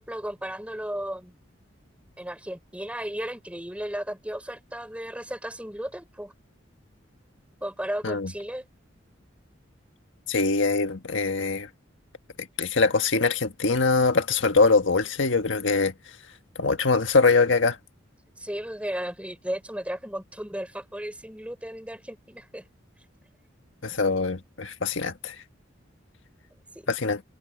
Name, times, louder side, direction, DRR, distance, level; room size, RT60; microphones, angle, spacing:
voice 1, 0.0-1.3 2.2-6.3 7.6-8.6 18.4-22.6, equal, 5° right, 4.0 m, -34 dB
voice 2, 10.3-11.7 12.4-15.9 16.6-17.8 23.8-25.3 26.9-27.2, left 4 dB, 80° left, 1.6 m, -23 dB
head